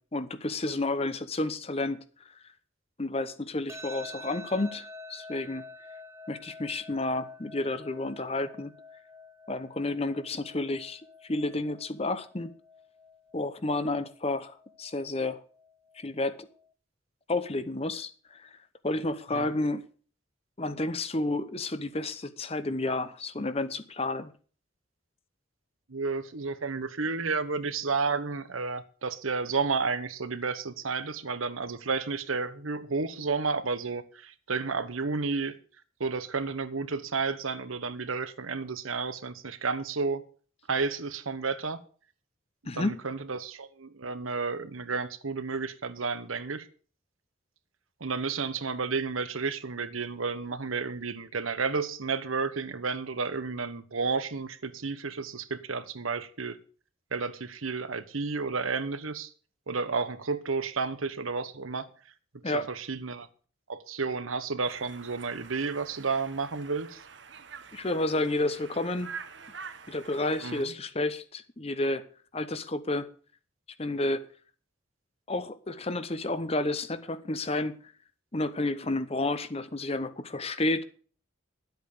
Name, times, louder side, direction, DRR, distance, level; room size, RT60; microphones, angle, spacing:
voice 1, 0.0-2.0 3.0-5.6 6.3-8.7 9.5-12.5 13.3-15.4 15.9-16.5 17.3-18.6 18.8-19.8 20.6-24.3 42.6-43.0 62.4-62.7 67.7-69.1 69.9-72.0 72.3-73.1 73.8-74.2 75.3-77.8 78.3-80.8, left 2 dB, 30° left, 0.9 m, -31 dB
sound 1, 3.7-16.7, left 2 dB, 15° right, 0.9 m, -49 dB
voice 2, 25.9-35.5 36.0-40.2 40.7-41.8 42.6-46.7 48.0-56.6 57.1-59.3 59.7-61.9 62.3-63.3 63.7-67.0 70.4-70.7, right 4 dB, 90° right, 1.1 m, -31 dB
Conversation, 64.6-70.6, right 5 dB, 60° right, 1.0 m, -46 dB
11.5 x 8.1 x 6.7 m
head